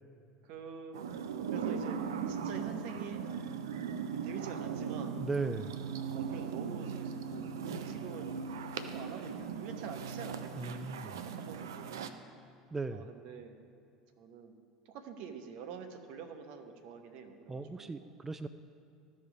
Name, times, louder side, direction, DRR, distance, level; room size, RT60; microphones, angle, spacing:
voice 1, 0.4-1.0 1.5-2.0 2.3-3.3 4.2-5.3 6.1-8.3 8.9-12.0 12.9-13.5 14.2-14.5 14.8-18.1, right 6 dB, 55° right, 7 dB, 0.9 m, -46 dB
sound 1, 0.9-12.1, right 6 dB, 70° right, 0.5 m, -38 dB
voice 2, 5.2-5.8 10.6-11.2 12.7-13.1 17.5-18.5, right 3 dB, 15° right, 12 dB, 0.3 m, -37 dB
14.0 x 5.3 x 4.9 m, 2.5 s
figure-of-eight pair, 70°, 2 cm